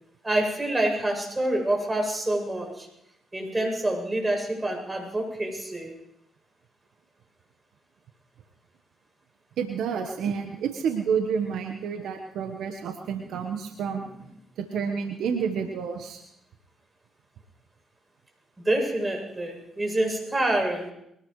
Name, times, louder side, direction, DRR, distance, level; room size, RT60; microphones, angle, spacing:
voice 1, 0.2-2.9 3.3-5.9 13.2-13.4 18.6-20.9, right 1 dB, 20° right, 1 dB, 7.9 m, -27 dB
voice 2, 9.6-14.1 14.6-16.3, right 6 dB, 70° right, 5 dB, 1.3 m, -29 dB
23.5 x 19.0 x 3.2 m, 0.78 s
hypercardioid pair, 45°, 0 cm